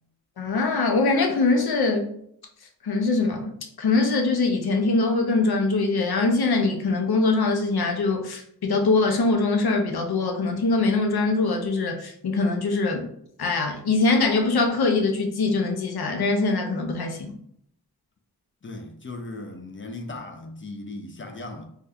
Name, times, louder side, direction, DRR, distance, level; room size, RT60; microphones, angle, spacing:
voice 1, 0.4-2.1 2.8-3.5 3.8-13.1 13.4-17.3, left 3 dB, 70° left, 3 dB, 0.6 m, -23 dB
voice 2, 18.6-21.7, left 2 dB, 30° left, 5 dB, 0.4 m, -37 dB
2.7 x 2.3 x 3.4 m, 0.70 s
wide cardioid pair, 100°, 39 cm